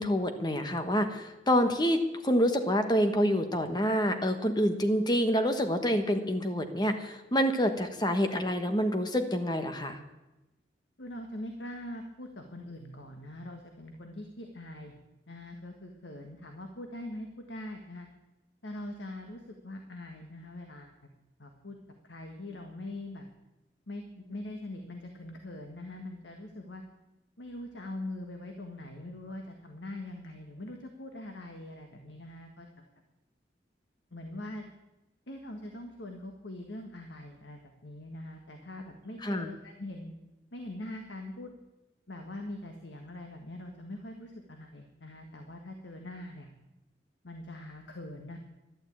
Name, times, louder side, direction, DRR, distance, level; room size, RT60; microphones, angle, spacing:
voice 1, 0.0-10.0 39.2-39.5, equal, 25° left, 7 dB, 1.4 m, -27 dB
voice 2, 11.0-14.9 15.3-18.1 18.6-20.9 21.4-21.8 22.0-23.2 23.9-26.8 27.4-32.7 34.1-34.6 35.3-40.1 40.5-41.5 42.1-46.5 47.2-48.4, left 1 dB, 85° left, 4 dB, 1.7 m, -42 dB
12.0 x 12.0 x 8.7 m, 1.0 s
head